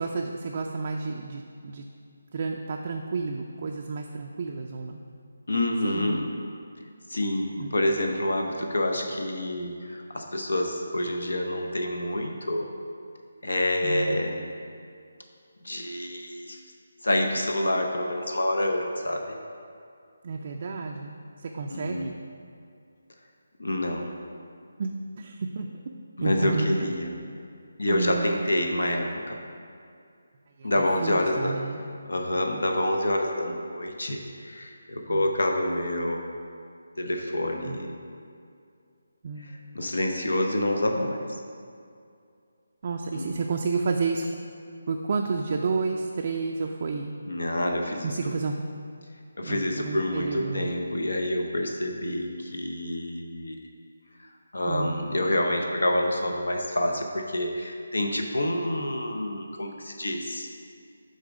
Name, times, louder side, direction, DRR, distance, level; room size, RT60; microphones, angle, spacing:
voice 1, 0.0-1.8 2.3-5.0 5.8-6.2 7.6-7.7 13.8-14.2 20.2-22.1 24.8-25.7 26.2-26.8 27.9-28.3 30.6-31.8 35.1-35.2 37.6-37.8 39.2-39.5 42.8-44.3 44.9-47.1 48.0-48.6 49.4-50.7 54.7-55.0, right 4 dB, 45° right, 1 dB, 0.4 m, -31 dB
voice 2, 5.5-6.2 7.1-12.7 13.4-14.5 15.6-16.6 17.0-19.4 21.7-22.1 23.6-24.2 26.2-27.2 27.8-29.4 30.6-31.6 32.1-36.3 37.0-38.0 39.4-41.2 43.1-43.3 47.3-48.3 49.4-53.6 54.2-60.5, left 1 dB, 75° left, 3 dB, 0.7 m, -27 dB
6.5 x 3.9 x 5.0 m, 2.4 s
figure-of-eight pair, 155°, 0 cm